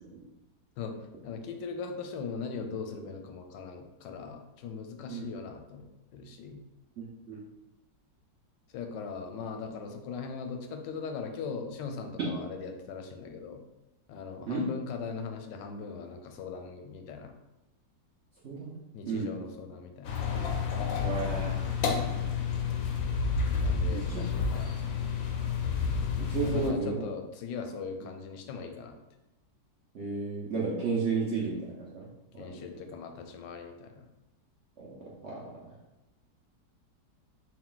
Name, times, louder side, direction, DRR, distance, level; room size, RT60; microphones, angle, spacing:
voice 1, 0.8-6.6 8.7-13.6 14.1-17.3 18.9-20.2 23.6-24.8 26.4-29.0 32.4-34.1, left 5 dB, 90° left, 5 dB, 1.2 m, -40 dB
voice 2, 7.0-7.4 14.4-14.6 18.4-18.8 19.1-19.3 21.0-21.5 23.9-24.2 26.2-27.0 29.9-32.1 32.3-32.7 34.8-35.7, right 4 dB, 60° right, -6 dB, 0.7 m, -33 dB
sound 1, 20.0-26.7, left 5 dB, 70° left, 0.8 m, -30 dB
3.9 x 2.3 x 3.8 m, 0.96 s
omnidirectional pair, 1.8 m